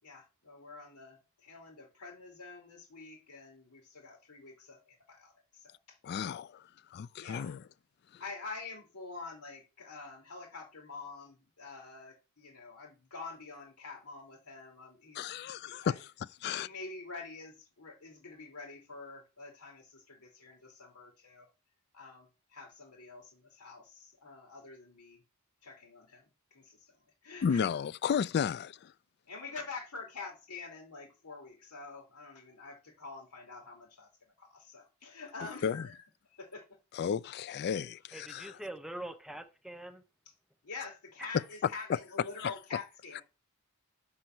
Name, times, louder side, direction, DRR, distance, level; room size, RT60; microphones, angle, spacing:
voice 1, 0.0-6.0 7.2-7.6 8.2-16.0 16.5-21.5 21.9-25.2 25.6-27.7 29.2-36.0 36.3-36.7 40.6-43.2, left 4 dB, 90° left, 3.3 m, -47 dB
voice 2, 6.0-6.6 6.9-7.6 15.2-16.0 16.4-16.7 27.4-28.9 35.6-35.8 37.0-38.4 43.1-43.2, left 7 dB, 45° left, 0.3 m, -33 dB
voice 3, 38.1-40.0 41.2-41.3, right 1 dB, ahead, 0.7 m, -43 dB
6.4 x 5.5 x 6.0 m
head